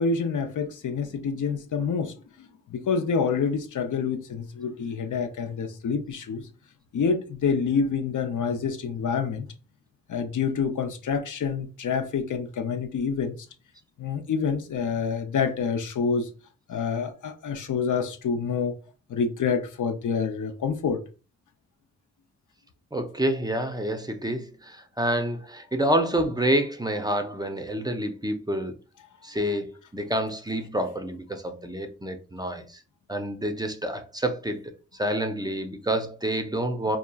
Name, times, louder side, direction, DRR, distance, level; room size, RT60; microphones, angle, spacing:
voice 1, 0.0-6.5 6.9-9.5 10.1-13.4 14.0-16.3 16.7-18.8 19.1-21.0, left 5 dB, 75° left, 0.5 m, -27 dB
voice 2, 22.9-28.7 29.2-32.8 33.1-34.6 34.9-37.0, right 1 dB, 15° right, 0.4 m, -28 dB
2.7 x 2.3 x 2.2 m
cardioid pair, 45°, 31 cm